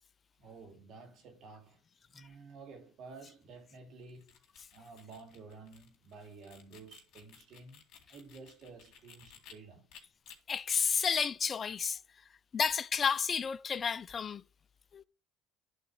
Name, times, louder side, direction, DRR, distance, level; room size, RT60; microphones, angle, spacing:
voice 1, 0.4-1.8 2.1-4.4 4.7-7.8 8.1-9.9, right 4 dB, 60° right, 2.8 m, -52 dB
sound 1, 4.0-9.5 9.9-10.4, left 7 dB, 65° left, 2.3 m, -57 dB
voice 2, 10.5-12.0 12.5-14.4 14.9-15.0, left 6 dB, 35° left, 0.4 m, -31 dB
11.0 x 4.0 x 4.8 m
supercardioid pair, 85°, 0 cm